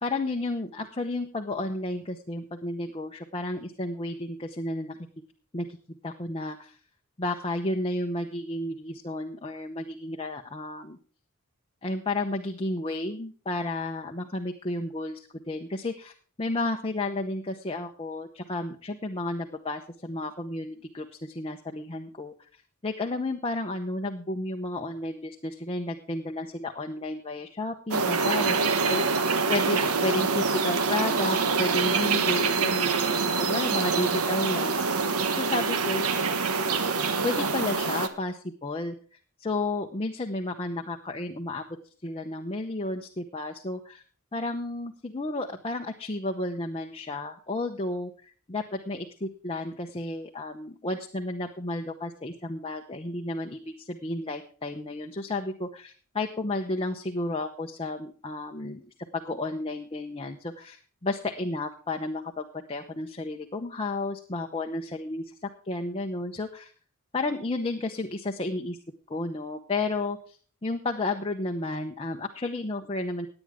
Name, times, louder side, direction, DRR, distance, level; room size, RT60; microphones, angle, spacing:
voice 1, 0.0-5.0 5.5-5.8 6.0-6.8 7.2-11.0 11.8-16.1 16.4-22.3 22.8-29.2 29.5-34.8 35.4-36.0 37.2-39.0 39.4-41.6 42.0-44.0 44.3-58.8 59.1-65.3 65.6-66.7 67.1-68.8 69.1-73.3, left 2 dB, 25° left, 3 dB, 0.8 m, -32 dB
sound 1, 27.9-38.1, right 4 dB, 75° right, 1.1 m, -25 dB
17.5 x 9.0 x 3.6 m, 0.41 s
head